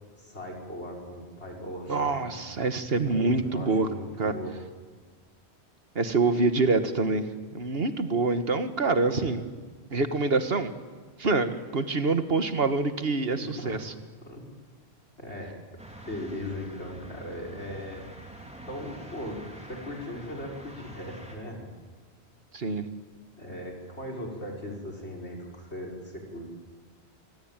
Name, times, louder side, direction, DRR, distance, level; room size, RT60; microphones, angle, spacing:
voice 1, 0.2-2.3 3.1-4.5 13.4-13.8 14.2-14.5 15.2-15.6 16.1-18.1 18.7-21.7 23.4-26.4, left 1 dB, 85° left, 0 dB, 5.6 m, -38 dB
voice 2, 1.9-3.9 4.2-4.3 6.0-9.4 9.9-10.7 11.2-13.9 22.5-22.9, right 3 dB, 60° right, 9 dB, 1.7 m, -26 dB
sound 1, 15.8-21.4, right 1 dB, 5° right, 3.9 m, -46 dB
26.5 x 24.0 x 9.0 m, 1.5 s
omnidirectional pair, 1.1 m